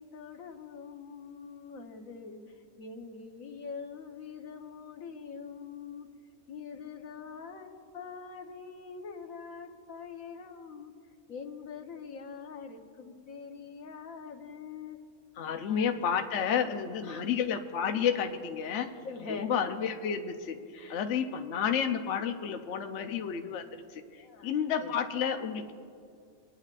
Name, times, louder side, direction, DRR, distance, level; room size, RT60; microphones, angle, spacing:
voice 1, 0.0-2.4 2.8-6.1 6.5-10.9 11.3-15.0 15.6-16.2 17.0-17.3 18.7-19.5 20.7-21.0 24.2-24.5 24.8-24.9, left 5 dB, 85° left, 4 dB, 1.4 m, -44 dB
voice 2, 15.4-18.9 19.3-20.6 20.9-25.7, left 7 dB, 65° left, 6 dB, 0.9 m, -31 dB
25.0 x 10.0 x 2.4 m, 2.3 s
omnidirectional pair, 1.4 m